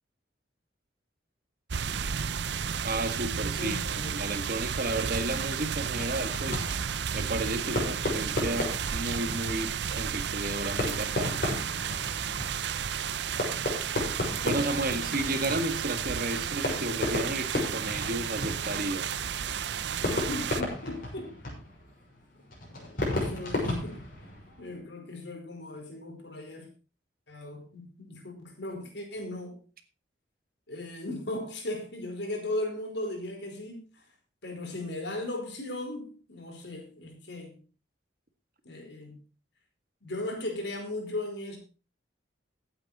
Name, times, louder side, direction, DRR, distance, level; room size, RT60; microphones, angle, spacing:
sound 1, 1.7-20.6, right 7 dB, 65° right, 0.6 m, -32 dB
voice 1, 2.8-6.6 7.1-11.4 14.4-19.1, right 2 dB, 50° right, 8 dB, 1.8 m, -33 dB
voice 2, 3.6-4.2 7.6-8.2 14.0-14.1 20.0-21.6 22.7-24.1 24.6-26.7 27.3-29.6 30.7-34.1 34.4-37.6 38.6-39.2 40.0-41.6, left 1 dB, 65° left, 3 dB, 4.7 m, -37 dB
Fireworks, 5.9-24.7, left 1 dB, 50° left, 6.4 m, -35 dB
15.5 x 8.9 x 4.2 m, 0.34 s
head